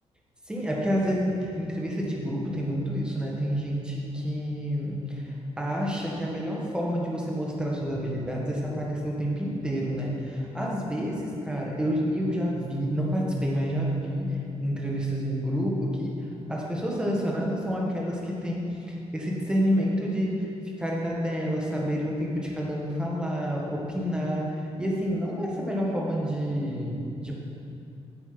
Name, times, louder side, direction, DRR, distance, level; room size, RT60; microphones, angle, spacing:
voice 1, 0.5-14.3 14.6-16.1 16.5-20.5 20.8-27.3, equal, 10° right, -3 dB, 1.6 m, -29 dB
8.5 x 7.7 x 6.1 m, 2.6 s
wide cardioid pair, 155°, 11 cm